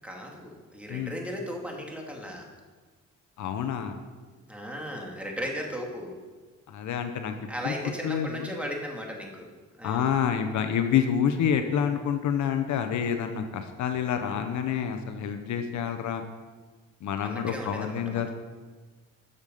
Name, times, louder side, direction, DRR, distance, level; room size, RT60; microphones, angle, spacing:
voice 1, 0.0-2.4 4.5-6.2 7.5-9.5 9.8-10.1 14.2-14.4 17.2-18.3, equal, 5° right, -1 dB, 2.5 m, -36 dB
voice 2, 3.4-4.0 6.7-7.3 7.6-7.7 8.0-8.5 9.8-16.2 17.0-18.3, left 8 dB, 70° left, 7 dB, 0.9 m, -28 dB
12.5 x 6.7 x 5.5 m, 1.4 s
cardioid pair, 90°, 30 cm